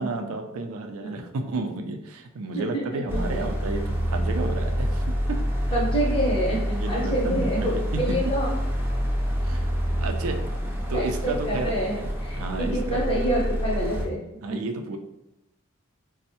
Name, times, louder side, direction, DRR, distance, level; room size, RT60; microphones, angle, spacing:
voice 1, 0.0-5.4 5.7-5.8 6.8-8.0 9.4-9.7 10.0-10.4 10.9-13.0 14.4-15.0, right 3 dB, 85° right, 4 dB, 0.4 m, -32 dB
voice 2, 2.5-3.4 5.7-7.7 8.0-8.6 10.9-14.2 14.5-14.6, right 1 dB, 25° left, -5 dB, 0.9 m, -27 dB
sound 1, 3.1-14.1, equal, 10° right, 0.3 m, -27 dB
4.3 x 2.0 x 2.7 m, 0.90 s
head